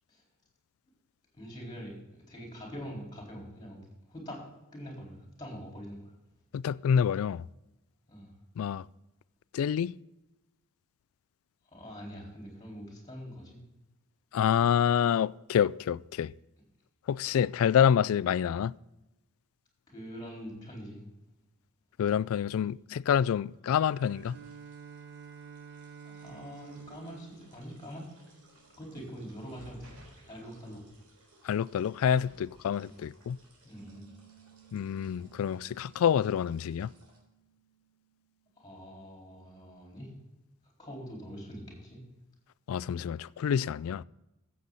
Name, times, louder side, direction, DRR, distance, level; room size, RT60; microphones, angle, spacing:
voice 1, 1.3-4.4 4.7-6.1 8.1-8.3 11.7-13.6 19.9-21.0 26.0-28.0 28.8-29.9 30.2-30.8 32.9-33.0 33.6-34.1 38.6-40.1 40.8-42.0, equal, 20° left, 4.3 m, -44 dB
voice 2, 6.5-7.5 8.6-8.8 9.5-9.9 14.3-16.3 17.1-18.7 22.0-24.3 31.4-33.4 34.7-36.9 42.7-44.0, left 8 dB, 65° left, 0.3 m, -27 dB
sound 1, 23.6-37.2, right 1 dB, 80° right, 3.7 m, -60 dB
Bowed string instrument, 23.7-28.7, right 7 dB, 50° right, 1.2 m, -50 dB
Piano, 33.8-38.9, right 11 dB, 35° right, 2.6 m, -62 dB
14.0 x 7.8 x 4.0 m
head